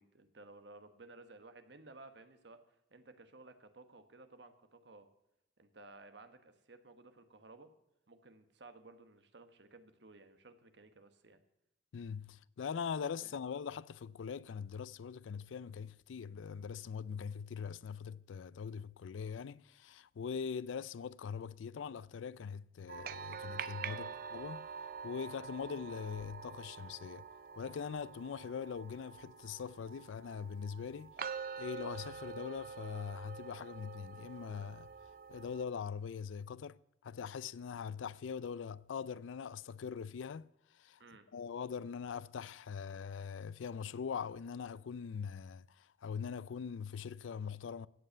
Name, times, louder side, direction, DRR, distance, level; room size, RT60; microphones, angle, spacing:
voice 1, 0.0-2.6 2.9-5.1 5.6-7.7 8.1-11.4 13.2-13.5 23.8-24.2 41.0-41.3, right 2 dB, 65° right, 1.2 m, -56 dB
voice 2, 11.9-24.0 24.3-24.7 25.0-27.2 27.6-31.1 31.6-34.9 35.3-40.5 40.7-41.0 41.3-47.9, left 6 dB, 90° left, 0.4 m, -42 dB
sound 1, 22.9-35.6, right 6 dB, 50° right, 0.5 m, -46 dB
15.5 x 5.5 x 9.2 m
head